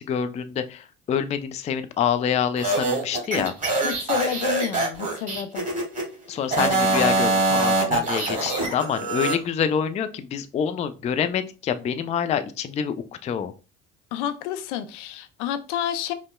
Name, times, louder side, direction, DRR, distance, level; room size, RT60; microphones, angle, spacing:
voice 1, 0.0-3.5 6.3-12.9 13.2-13.5, left 8 dB, 20° left, 0.3 m, -26 dB
sound 1, 2.6-6.1 6.5-9.4, right 2 dB, 20° right, 1.9 m, -24 dB
voice 2, 3.8-5.7 14.1-16.1, left 10 dB, 75° left, 0.5 m, -30 dB
5.2 x 2.2 x 2.2 m
hypercardioid pair, 70°, 36 cm